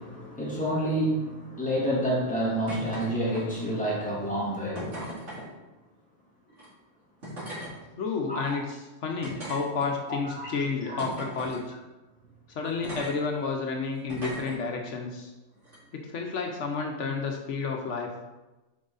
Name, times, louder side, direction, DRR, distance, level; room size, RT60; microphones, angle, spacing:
voice 1, 0.0-5.0 8.3-8.6 10.3-10.5 10.9-11.0, right 1 dB, 5° left, -6 dB, 2.0 m, -29 dB
sound 1, 2.7-3.1 3.3-3.8 4.7-5.4 6.5-6.7 7.2-7.7 8.4-8.5 9.2-10.1 11.0-11.6 12.8-13.1 14.1-14.5 15.6-15.8, equal, 90° right, 2.8 m, -38 dB
voice 2, 8.0-11.7 12.5-15.3 15.9-18.1, left 4 dB, 75° left, 2 dB, 1.1 m, -31 dB
7.5 x 4.9 x 3.9 m, 1.1 s
omnidirectional pair, 1.2 m